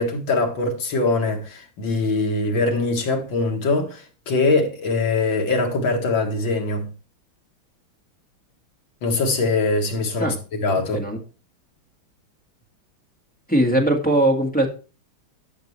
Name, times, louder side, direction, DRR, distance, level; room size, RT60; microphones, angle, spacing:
voice 1, 0.0-6.9 9.0-10.3 10.6-11.0, left 3 dB, 70° left, 2.3 m, -22 dB
voice 2, 13.5-14.7, right 1 dB, 5° left, 1.3 m, -19 dB
11.5 x 6.6 x 3.2 m
omnidirectional pair, 2.3 m